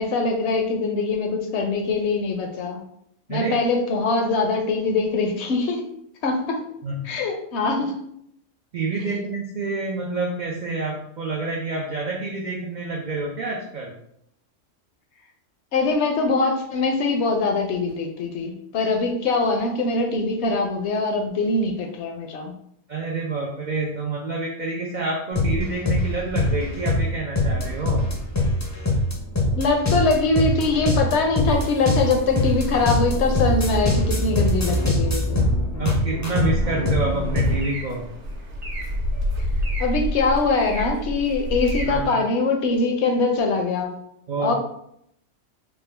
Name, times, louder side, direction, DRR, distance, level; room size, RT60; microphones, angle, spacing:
voice 1, 0.0-2.8 3.3-5.8 6.2-6.6 7.0-8.0 9.1-9.2 15.7-22.5 29.5-35.5 39.8-43.9 44.4-44.5, left 3 dB, 70° left, 3 dB, 0.8 m, -23 dB
voice 2, 8.7-14.0 22.9-28.1 35.8-38.1 41.9-42.2 44.3-44.5, right 3 dB, 85° right, 0 dB, 0.4 m, -28 dB
sound 1, 25.3-37.6, left 1 dB, 30° left, 0.3 m, -23 dB
sound 2, 37.1-42.0, equal, 50° right, 0.8 m, -28 dB
3.6 x 2.2 x 3.2 m, 0.74 s
omnidirectional pair, 1.3 m